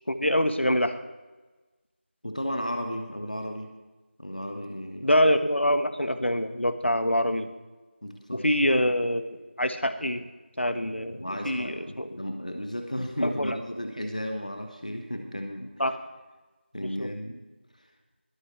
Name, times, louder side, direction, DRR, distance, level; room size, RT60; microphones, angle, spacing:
voice 1, 0.1-1.0 5.0-7.5 8.3-10.2 10.6-12.2 13.2-13.6 15.8-15.9 16.8-17.1, equal, 90° left, 10 dB, 1.3 m, -25 dB
voice 2, 2.2-3.7 4.2-5.1 8.0-8.5 11.2-15.7 16.7-17.4 17.8-17.9, equal, 40° left, 4 dB, 1.2 m, -34 dB
22.0 x 8.9 x 3.2 m, 1.2 s
figure-of-eight pair, 180°, 6 cm